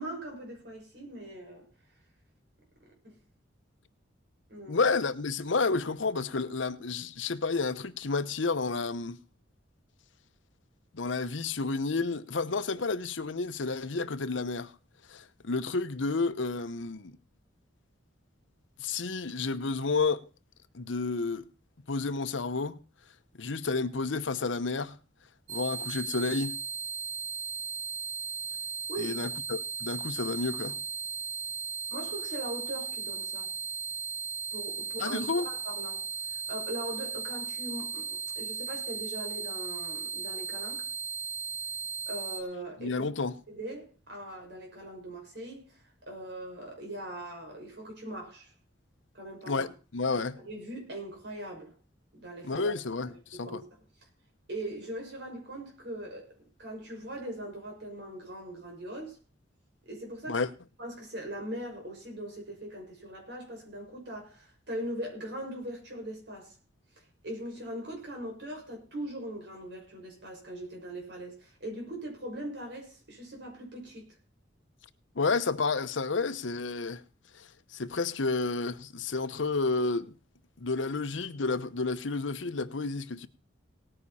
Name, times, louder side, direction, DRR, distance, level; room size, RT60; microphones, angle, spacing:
voice 1, 0.0-1.7 3.0-3.2 4.5-4.8 28.9-29.2 31.9-33.5 34.5-36.1 36.5-38.1 38.4-40.9 42.1-43.1 43.5-45.8 46.0-48.5 49.1-49.7 50.4-51.7 52.1-52.7 53.3-53.6 54.5-56.3 56.6-59.2 59.9-60.4 60.8-66.5 67.2-74.1, right 1 dB, 65° right, 6.2 m, -40 dB
voice 2, 4.7-9.2 10.9-14.7 15.1-17.2 18.8-20.2 20.7-21.5 21.9-22.8 23.4-25.0 25.5-26.6 29.0-30.8 35.0-35.5 42.8-43.3 49.5-50.4 52.4-53.6 60.3-60.5 75.2-77.0 77.3-80.1 80.6-83.3, left 4 dB, 90° left, 0.9 m, -31 dB
sound 1, 25.5-42.4, right 6 dB, 80° right, 1.9 m, -36 dB
18.0 x 9.9 x 4.2 m
head